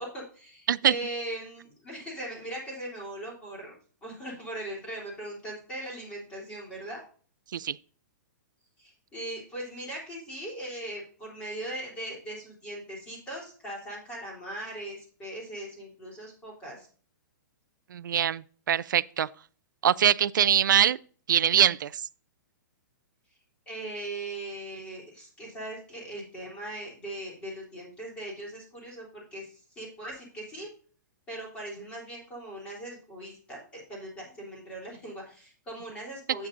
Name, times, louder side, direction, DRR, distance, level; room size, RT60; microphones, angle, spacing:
voice 1, 0.0-3.7 4.0-7.0 8.8-16.9 23.7-30.7 31.3-36.5, right 1 dB, 10° left, 3.3 m, -39 dB
voice 2, 17.9-19.3 19.8-21.0 21.3-22.0, right 9 dB, 85° right, 0.4 m, -23 dB
8.7 x 8.4 x 2.6 m
hypercardioid pair, 170°, 10 cm